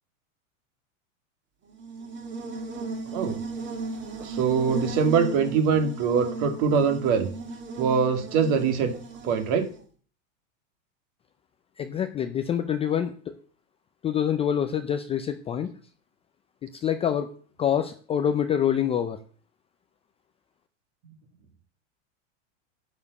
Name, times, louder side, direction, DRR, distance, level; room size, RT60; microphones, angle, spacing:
Buzz, 1.7-9.8, right 3 dB, 30° right, 2.2 m, -36 dB
voice 1, 4.2-7.3 7.8-8.9 9.2-9.7, right 6 dB, 50° right, 6 dB, 2.3 m, -23 dB
voice 2, 11.8-13.1 14.0-15.7 16.7-17.3 17.6-19.2, left 9 dB, 15° left, 8 dB, 0.4 m, -26 dB
11.0 x 5.1 x 8.1 m, 0.43 s
supercardioid pair, 140°, 39 cm